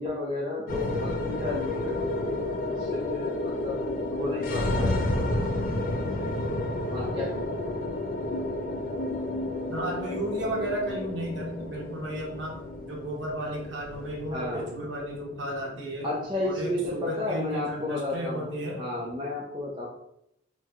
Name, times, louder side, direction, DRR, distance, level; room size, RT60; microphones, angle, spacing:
voice 1, 0.0-3.8 4.1-5.4 6.0-7.8 14.3-14.9 16.0-18.5 18.8-19.9, left 2 dB, 25° right, -5 dB, 0.5 m, -33 dB
sound 1, 0.7-19.1, left 1 dB, 45° left, 0.3 m, -32 dB
voice 2, 9.7-12.6 12.8-16.1 16.4-18.8, right 1 dB, 60° right, -2 dB, 0.9 m, -33 dB
3.1 x 2.1 x 3.5 m, 0.78 s
head